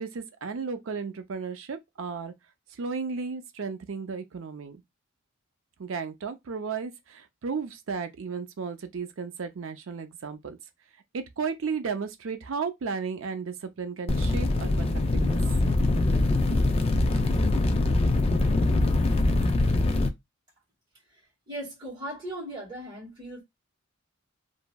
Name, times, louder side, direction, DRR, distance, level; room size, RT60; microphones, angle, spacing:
voice 1, 0.0-2.3 2.7-4.8 5.8-10.6 11.1-15.4, right 5 dB, 65° right, 0.5 m, -34 dB
sound 1, 14.1-20.1, left 2 dB, 30° left, 0.4 m, -23 dB
voice 2, 21.5-23.4, right 1 dB, 20° right, 1.7 m, -38 dB
3.0 x 2.6 x 2.2 m
head